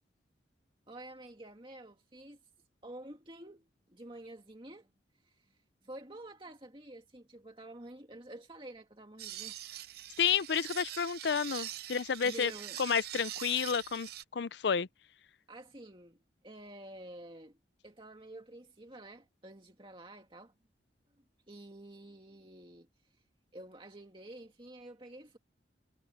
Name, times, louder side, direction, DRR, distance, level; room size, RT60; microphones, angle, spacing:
voice 1, 0.9-2.4 2.8-4.9 5.2-9.6 12.2-12.8 15.5-17.6 17.8-20.5 21.5-23.2 23.5-25.4, right 1 dB, 25° right, 2.3 m, -50 dB
sound 1, 9.2-14.2, right 13 dB, 55° right, 0.6 m, -43 dB
voice 2, 10.2-12.5 12.8-14.9, left 7 dB, 65° left, 0.5 m, -31 dB
head